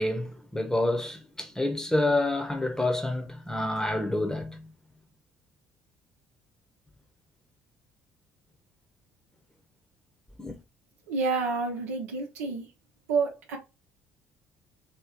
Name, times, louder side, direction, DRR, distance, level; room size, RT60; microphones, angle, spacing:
voice 1, 0.0-4.6 10.4-10.5, left 1 dB, 5° left, 1.0 m, -28 dB
voice 2, 11.1-12.7 13.1-13.6, right 4 dB, 75° right, 0.9 m, -29 dB
3.1 x 3.0 x 3.7 m
figure-of-eight pair, 50°, 8 cm